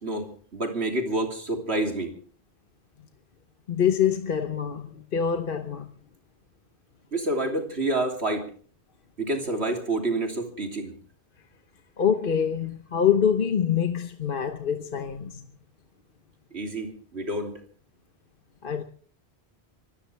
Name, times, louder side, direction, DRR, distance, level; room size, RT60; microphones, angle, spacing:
voice 1, 0.0-2.1 7.1-8.5 9.2-10.9 16.5-17.6, right 2 dB, 80° right, 3.4 m, -28 dB
voice 2, 3.7-5.9 12.0-15.5 18.6-18.8, left 8 dB, 55° left, 1.1 m, -25 dB
25.0 x 16.5 x 3.4 m
omnidirectional pair, 1.1 m